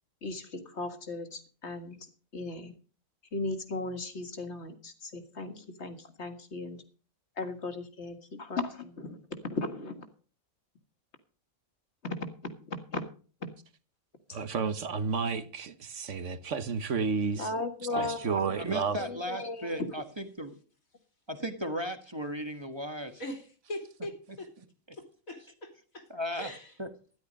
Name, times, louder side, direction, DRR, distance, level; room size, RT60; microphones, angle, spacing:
voice 1, 0.2-2.1 2.3-2.7 3.3-6.8 7.4-10.1 12.0-12.3 12.7-13.0 13.4-13.5 17.4-18.6 19.0-19.9, left 2 dB, 55° left, 2.0 m, -36 dB
voice 2, 14.3-17.5 18.0-19.0, right 5 dB, 65° right, 1.4 m, -31 dB
voice 3, 18.6-20.5 21.3-23.2 26.1-26.5 26.8-26.9, equal, 20° right, 1.3 m, -36 dB
voice 4, 23.2-24.5 24.9-26.1 26.3-26.7, left 1 dB, 90° left, 3.5 m, -42 dB
13.0 x 10.5 x 5.3 m
omnidirectional pair, 1.4 m